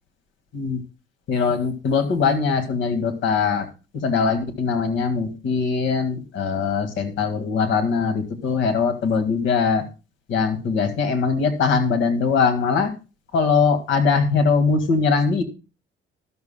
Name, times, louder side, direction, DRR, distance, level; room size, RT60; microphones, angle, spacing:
voice 1, 1.3-3.7 4.0-9.8 10.3-12.9 13.3-15.4, left 5 dB, 65° left, 8 dB, 1.9 m, -21 dB
13.0 x 12.0 x 2.2 m, 0.32 s
cardioid pair, 150°, 21 cm